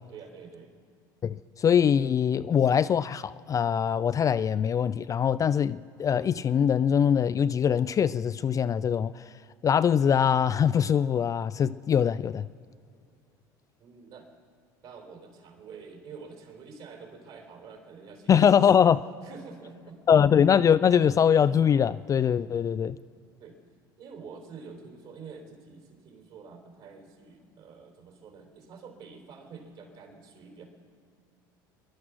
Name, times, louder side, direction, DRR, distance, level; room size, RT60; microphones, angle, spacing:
voice 1, 0.1-0.7 13.8-14.3 14.8-18.9 19.2-20.2 23.4-23.6 24.0-30.6, right 5 dB, 55° right, 3.9 m, -47 dB
voice 2, 1.2-9.2 9.6-12.5 18.3-19.0 20.1-23.0, left 8 dB, 30° left, 0.3 m, -23 dB
20.5 x 11.0 x 6.3 m
hypercardioid pair, 80°, 11 cm